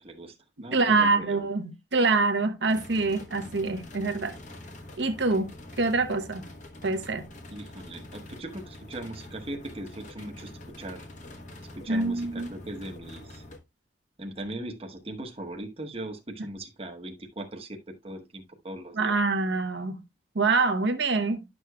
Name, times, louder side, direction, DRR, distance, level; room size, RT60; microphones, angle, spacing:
voice 1, 0.0-1.4 7.5-10.5 10.8-11.1 11.7-13.4 14.2-19.1, right 1 dB, 35° right, 1.0 m, -39 dB
voice 2, 0.7-4.4 5.0-5.5 5.8-6.5 6.8-7.2 11.9-12.5 19.0-20.0 20.3-21.4, right 3 dB, 70° right, 0.9 m, -25 dB
sound 1, 2.7-13.6, left 1 dB, 45° left, 1.1 m, -45 dB
10.5 x 6.3 x 2.3 m
head